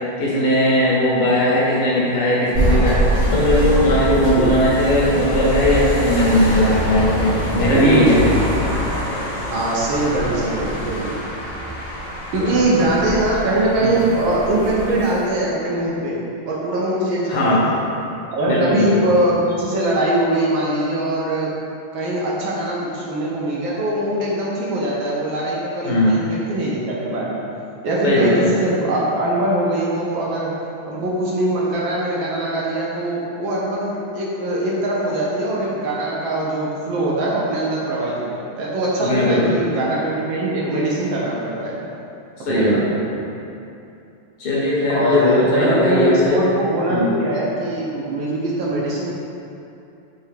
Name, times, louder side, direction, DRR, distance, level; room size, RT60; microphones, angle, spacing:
voice 1, 0.2-8.2 12.4-12.9 13.8-14.1 17.3-17.7 18.5-19.0 25.9-26.3 28.0-28.7 39.0-39.7 42.5-42.8 44.4-46.4 46.9-47.1, left 1 dB, 80° left, -6 dB, 1.9 m, -18 dB
sound 1, 2.5-15.3, right 1 dB, 35° left, 1.7 m, -24 dB
voice 2, 7.7-8.7 9.5-11.1 12.3-16.2 16.5-17.8 18.3-21.5 21.9-27.4 27.8-30.5 30.9-41.8 42.5-43.0 44.9-49.1, right 1 dB, 70° right, -5 dB, 1.3 m, -22 dB
4.6 x 3.2 x 3.3 m, 2.7 s
omnidirectional pair, 2.4 m